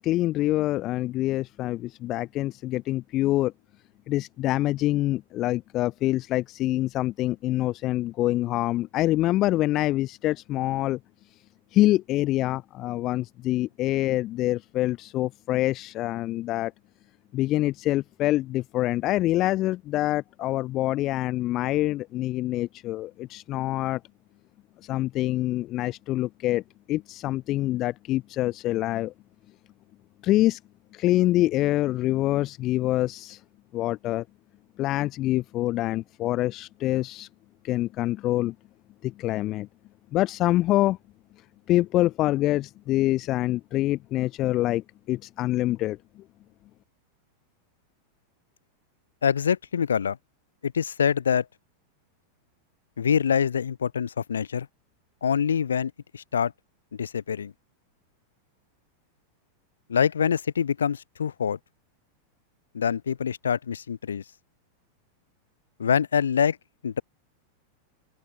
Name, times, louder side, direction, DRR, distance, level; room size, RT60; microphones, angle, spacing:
voice 1, 0.0-3.5 4.1-11.0 11.7-16.7 17.3-24.0 24.8-26.6 26.9-29.1 30.2-30.6 30.9-33.4 33.7-34.2 34.8-37.3 37.6-38.5 39.0-39.7 40.1-41.0 41.7-46.2, left 16 dB, 35° left, 1.5 m, -25 dB
voice 2, 49.2-50.2 50.6-51.4 53.0-54.7 55.2-56.5 57.0-57.5 59.9-61.6 62.7-64.2 65.8-66.6 66.8-67.0, left 7 dB, 70° left, 4.3 m, -25 dB
open air
figure-of-eight pair, 90°, 0 cm